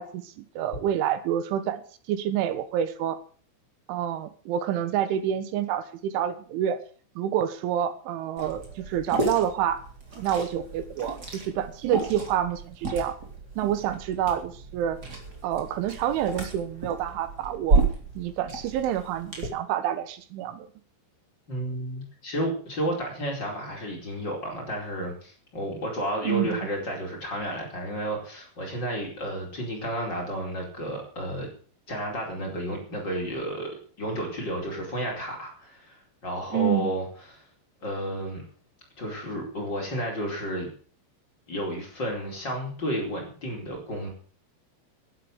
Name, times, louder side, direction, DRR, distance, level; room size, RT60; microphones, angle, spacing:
voice 1, 0.0-1.8 2.1-3.2 3.9-6.8 7.2-9.8 10.2-13.2 13.6-15.0 15.4-17.8 18.2-20.7 26.2-26.6 36.5-36.9, right 10 dB, 85° right, 12 dB, 3.7 m, -28 dB
Liquid, 8.4-19.5, right 3 dB, 25° right, 3.4 m, -32 dB
voice 2, 21.5-31.5 31.9-33.7 34.0-37.0 37.3-37.4 37.8-38.4 39.0-40.7 41.5-44.1, equal, 25° left, 0 dB, 4.8 m, -32 dB
11.5 x 11.0 x 8.0 m, 0.43 s
omnidirectional pair, 5.4 m